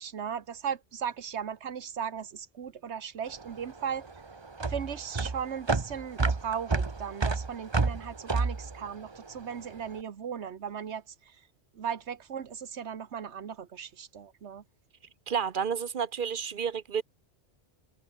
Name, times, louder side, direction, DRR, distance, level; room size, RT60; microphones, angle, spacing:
voice 1, 0.0-4.1 4.7-11.4 11.7-14.6, right 7 dB, 90° right, 1.4 m, -37 dB
sound 1, 3.3-9.8, right 4 dB, 25° right, 0.9 m, -30 dB
voice 2, 15.3-17.0, right 7 dB, 50° right, 1.0 m, -30 dB
omnidirectional pair, 1.1 m